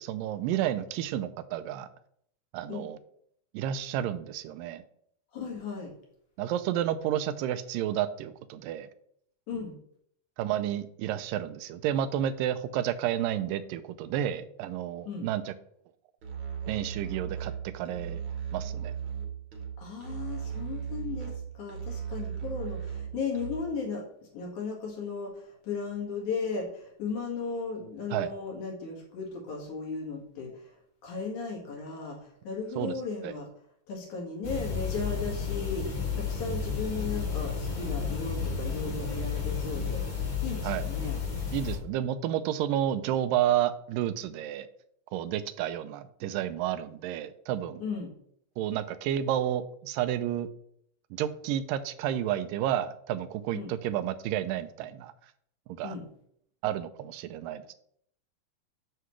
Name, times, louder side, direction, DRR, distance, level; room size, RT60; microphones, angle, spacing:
voice 1, 0.0-1.9 2.5-3.0 3.5-4.8 6.4-8.9 10.4-15.5 16.7-18.2 18.5-18.9 28.1-28.3 32.8-32.9 33.2-33.3 40.6-40.8 41.5-44.7 45.1-47.8 48.6-50.5 51.1-55.1 55.8-56.0 56.6-57.7, right 11 dB, 90° right, 12 dB, 2.3 m, -31 dB
voice 2, 5.3-5.9 9.5-9.7 15.1-15.3 19.8-24.1 24.3-30.7 31.0-33.5 33.9-40.0 40.4-41.2 47.8-48.1 53.5-53.7 55.8-56.0, left 5 dB, 65° left, -1 dB, 3.1 m, -36 dB
Musical instrument, 16.2-23.8, right 7 dB, 55° right, 1.5 m, -37 dB
sound 1, 34.4-41.8, left 5 dB, 40° left, 2.7 m, -32 dB
7.9 x 6.6 x 3.1 m, 0.67 s
omnidirectional pair, 3.8 m